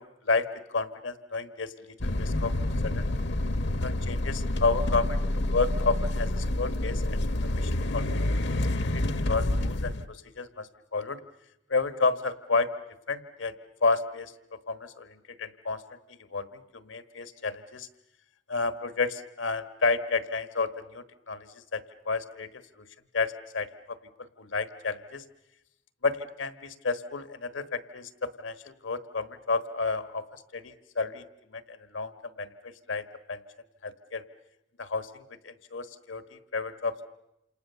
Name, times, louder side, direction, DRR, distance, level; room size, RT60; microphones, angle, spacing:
voice 1, 0.0-2.5 2.8-3.1 3.8-11.2 11.7-12.7 13.1-13.5 13.8-17.9 18.5-22.9 23.1-25.2 26.0-33.4 33.8-34.2 34.8-37.0, left 4 dB, 80° left, 11 dB, 1.3 m, -31 dB
sound 1, 2.0-10.1, left 1 dB, 65° left, 0.9 m, -28 dB
28.0 x 28.0 x 6.8 m, 0.87 s
head